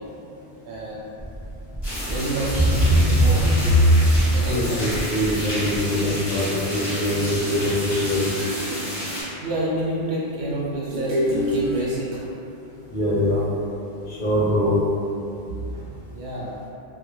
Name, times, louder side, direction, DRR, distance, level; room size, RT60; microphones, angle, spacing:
voice 1, 0.7-1.2 2.1-3.8 4.3-4.9 5.2-5.4 8.6-8.7 9.4-12.2 15.4-15.8 16.1-16.5, right 1 dB, 80° right, -6 dB, 0.9 m, -29 dB
sound 1, 1.2-1.4 1.7-2.2 2.5-4.5 4.9-5.3 5.8-5.9, equal, 5° right, 0.6 m, -19 dB
sound 2, 1.8-9.2, equal, 25° left, 0.8 m, -31 dB
voice 2, 4.5-8.3 12.9-13.5 14.1-14.8, left 1 dB, 55° left, -8 dB, 0.7 m, -23 dB
sound 3, 7.5-9.4 10.9-12.4, left 1 dB, 55° right, 0.5 m, -28 dB
2.2 x 2.2 x 3.0 m, 2.7 s
omnidirectional pair, 1.1 m